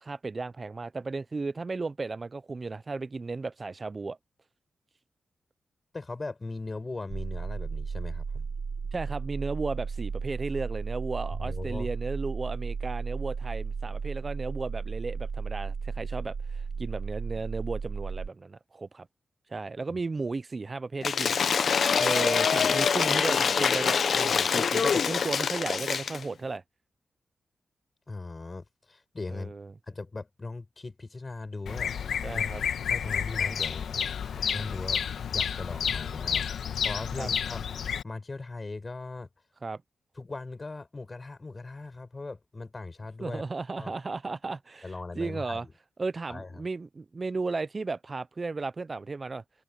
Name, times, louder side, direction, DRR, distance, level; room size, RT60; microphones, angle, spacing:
voice 1, 0.0-4.2 8.9-19.1 19.5-21.4 22.0-26.6 29.3-29.7 32.2-32.6 37.2-37.3 39.6-39.8 43.2-45.6 46.0-49.4, right 3 dB, 40° right, 0.5 m, -34 dB
voice 2, 5.9-8.5 11.4-11.9 19.9-20.0 28.1-29.5 29.9-31.9 32.3-32.5 32.9-35.0 35.3-37.6 38.0-39.3 40.2-43.4 43.8-43.9 44.8-45.7 46.3-46.7, left 3 dB, 35° left, 7.0 m, -39 dB
sound 1, 7.1-18.3, right 5 dB, 60° right, 1.6 m, -34 dB
Cheering / Applause / Crowd, 21.0-26.2, left 6 dB, 70° left, 0.7 m, -25 dB
Bird vocalization bird call bird song, 31.7-38.0, left 7 dB, 85° left, 1.3 m, -30 dB
cardioid pair, 75°, 0 cm